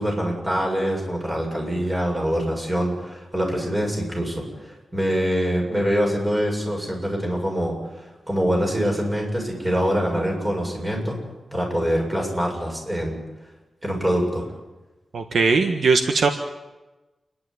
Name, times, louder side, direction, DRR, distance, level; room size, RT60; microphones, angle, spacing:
voice 1, 0.0-7.7 8.3-11.2 11.5-13.2 13.8-14.5, equal, 20° right, 0 dB, 7.5 m, -24 dB
voice 2, 15.1-16.3, right 4 dB, 70° right, 5 dB, 1.5 m, -19 dB
29.0 x 11.5 x 9.6 m, 1.1 s
wide cardioid pair, 120°, 0 cm